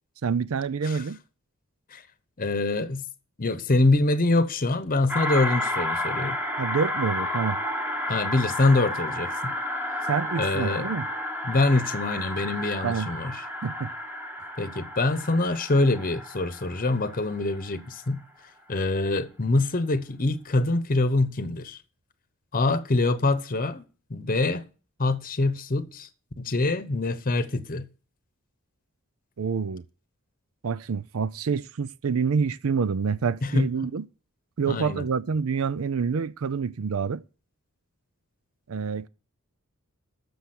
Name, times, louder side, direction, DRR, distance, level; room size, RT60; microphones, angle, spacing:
voice 1, 0.2-1.2 6.6-7.6 10.1-11.1 12.8-13.1 13.6-13.9 29.4-29.8 30.6-34.0 34.6-37.2 38.7-39.1, right 5 dB, 70° right, 0.5 m, -27 dB
voice 2, 2.4-3.0 3.4-6.4 8.1-9.5 10.4-10.9 11.4-13.4 14.6-18.2 18.7-21.8 22.5-23.8 24.1-24.7 25.0-26.1 26.4-27.9 33.4-33.7 34.7-35.0, left 2 dB, 40° left, 0.9 m, -25 dB
sound 1, 5.1-17.8, left 1 dB, 10° right, 1.2 m, -31 dB
10.0 x 7.1 x 7.9 m
head